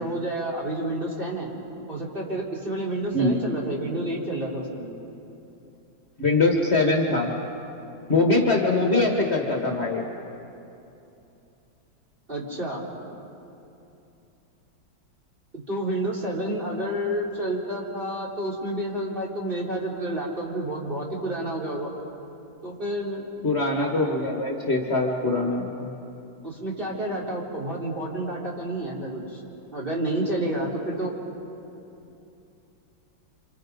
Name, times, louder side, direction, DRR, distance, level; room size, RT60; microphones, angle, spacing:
voice 1, 0.0-1.5 1.9-4.9 12.3-12.8 15.5-21.9 22.6-23.3 26.4-29.4 29.7-31.2, right 1 dB, 25° right, -3 dB, 4.2 m, -29 dB
voice 2, 6.2-7.3 8.1-10.1 23.4-25.9, left 2 dB, 35° left, 0 dB, 2.1 m, -23 dB
30.0 x 28.0 x 5.3 m, 2.8 s
omnidirectional pair, 2.1 m